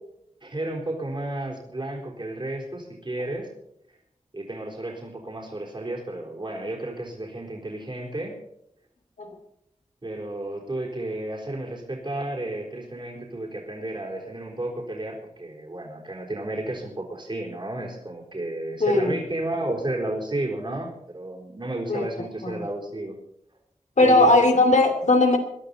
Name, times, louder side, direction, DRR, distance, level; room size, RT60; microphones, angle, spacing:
voice 1, 0.4-3.5 4.3-8.3 10.0-23.1 24.0-24.4, right 1 dB, 40° right, -1 dB, 4.1 m, -32 dB
voice 2, 18.8-19.2 21.9-22.1 22.4-22.6 24.0-25.4, left 2 dB, 75° left, 4 dB, 2.8 m, -18 dB
21.5 x 12.0 x 4.2 m, 0.76 s
wide cardioid pair, 85°, 12 cm